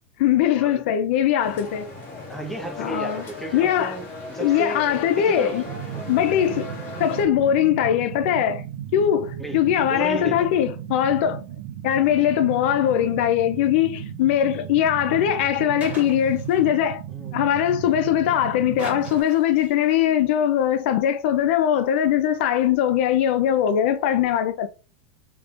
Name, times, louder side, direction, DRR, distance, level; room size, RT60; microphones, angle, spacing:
voice 1, 0.2-1.8 2.8-3.2 3.5-4.0 4.4-5.6 6.1-6.7 7.0-8.6 8.9-11.4 11.8-17.0 17.3-24.7, left 10 dB, 60° left, 0.5 m, -21 dB
sound 1, 1.4-7.3, left 2 dB, 35° left, 1.3 m, -37 dB
voice 2, 2.3-6.2 9.4-10.5 17.1-17.5, right 1 dB, 5° left, 0.8 m, -34 dB
sound 2, 5.6-19.2, right 10 dB, 60° right, 0.7 m, -36 dB
sound 3, 15.8-16.8 18.8-19.9, right 3 dB, 20° right, 1.4 m, -40 dB
3.4 x 3.3 x 2.4 m
supercardioid pair, 145°, 7 cm